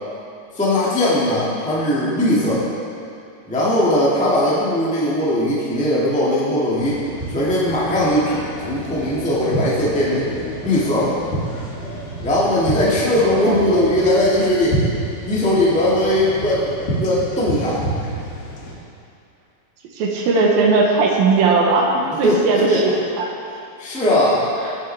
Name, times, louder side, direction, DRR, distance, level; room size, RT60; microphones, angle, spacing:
voice 1, 0.5-2.7 3.4-7.0 7.3-10.3 10.6-11.2 12.2-14.8 15.2-17.8 22.2-22.8 23.8-24.4, left 1 dB, 10° left, -8 dB, 0.3 m, -19 dB
sound 1, 6.8-18.7, right 1 dB, 60° left, 3.8 m, -29 dB
voice 2, 20.0-23.4 24.6-24.7, right 3 dB, 75° right, 0 dB, 2.6 m, -18 dB
17.0 x 7.2 x 3.4 m, 2.6 s
omnidirectional pair, 4.4 m